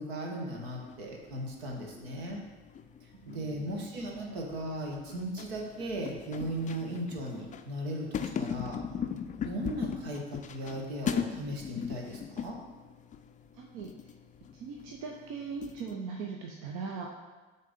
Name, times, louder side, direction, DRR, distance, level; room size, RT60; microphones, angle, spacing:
voice 1, 0.0-2.4 3.3-8.8 9.4-12.6, right 1 dB, 80° right, 0 dB, 1.1 m, -37 dB
sound 1, 0.6-15.9, left 7 dB, 25° left, 0.4 m, -40 dB
voice 2, 3.2-3.8 13.5-13.9 14.6-17.1, right 5 dB, 65° right, 1 dB, 0.7 m, -40 dB
6.5 x 2.9 x 5.1 m, 1.3 s
hypercardioid pair, 60°, 31 cm